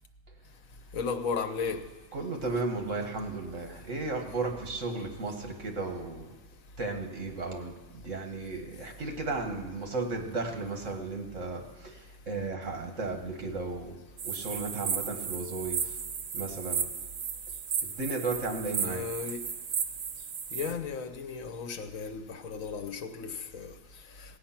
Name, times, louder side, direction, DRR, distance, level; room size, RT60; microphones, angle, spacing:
voice 1, 0.9-1.9 18.8-19.4 20.5-23.7, left 5 dB, 80° left, 1.3 m, -35 dB
voice 2, 2.1-6.3 6.8-14.0 14.2-16.0 16.3-16.9 17.8-19.1, right 3 dB, 65° right, 1.9 m, -34 dB
sound 1, 14.2-20.7, right 7 dB, 85° right, 1.3 m, -34 dB
16.5 x 8.7 x 5.8 m
omnidirectional pair, 1.4 m